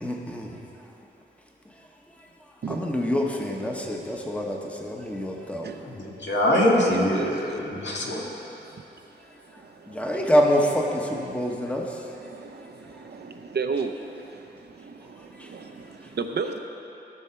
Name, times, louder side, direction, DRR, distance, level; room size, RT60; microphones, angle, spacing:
voice 1, 0.0-0.6 1.6-2.3 2.7-5.7 9.5-12.2 12.8-13.0 15.3-15.7 16.0-16.1, equal, 5° left, 0 dB, 1.1 m, -27 dB
voice 2, 5.9-8.2, left 1 dB, 75° left, -3 dB, 1.8 m, -23 dB
voice 3, 6.5-7.3 11.1-11.2 13.1-13.9 15.5-15.6 16.2-16.6, right 5 dB, 65° right, 6 dB, 0.7 m, -30 dB
16.5 x 6.3 x 4.5 m, 2.9 s
wide cardioid pair, 130°, 19 cm